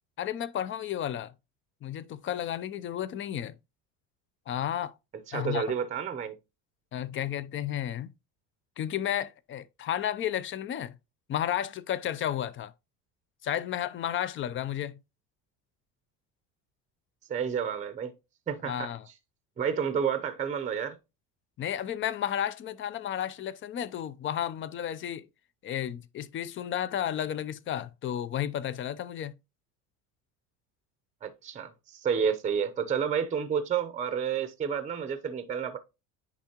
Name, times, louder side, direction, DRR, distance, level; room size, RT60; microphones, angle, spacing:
voice 1, 0.2-1.3 1.8-3.5 4.5-4.9 5.3-5.6 6.9-8.1 8.8-11.0 11.3-12.7 13.4-14.9 18.6-19.0 21.6-25.3 25.6-29.3, left 10 dB, 35° left, 0.5 m, -32 dB
voice 2, 5.3-6.4 17.3-18.1 18.5-18.9 19.6-21.0 31.2-35.8, right 7 dB, 20° right, 0.7 m, -30 dB
10.0 x 3.6 x 2.9 m
cardioid pair, 120°, 35 cm